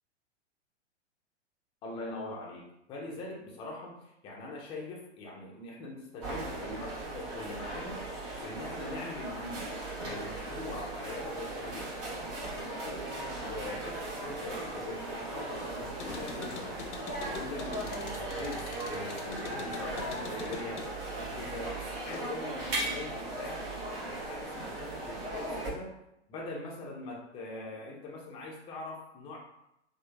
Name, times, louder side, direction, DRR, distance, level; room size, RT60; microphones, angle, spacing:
voice 1, 1.8-4.0 4.2-8.0 8.4-9.7 10.0-11.9 12.2-13.1 13.4-16.8 17.2-20.8 21.1-21.7 22.0-23.7 24.0-25.9 26.3-29.4, left 2 dB, 15° left, -2 dB, 0.4 m, -42 dB
sound 1, 6.2-25.7, right 2 dB, 40° right, 0.9 m, -38 dB
sound 2, 15.9-22.6 22.9-23.8, left 5 dB, 75° left, 0.5 m, -45 dB
2.9 x 2.1 x 2.3 m, 0.82 s
figure-of-eight pair, 105°, 35 cm